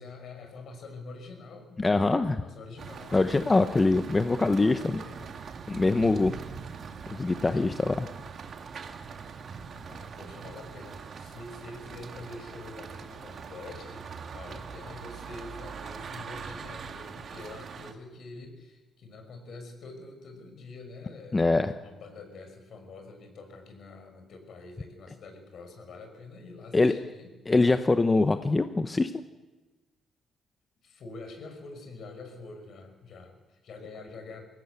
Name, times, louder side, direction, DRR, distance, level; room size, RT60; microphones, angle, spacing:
voice 1, 0.0-3.2 4.4-5.3 9.7-21.4 21.8-27.4 30.8-34.4, left 3 dB, 65° left, 5 dB, 5.6 m, -46 dB
voice 2, 1.8-2.4 3.1-5.0 5.7-6.3 7.1-8.1 21.3-21.7 26.7-26.9 27.5-29.1, left 3 dB, 25° left, 9 dB, 0.9 m, -23 dB
sound 1, 2.8-17.9, right 6 dB, 55° right, 2.1 m, -42 dB
22.0 x 17.0 x 8.2 m, 1.2 s
cardioid pair, 90°, 0 cm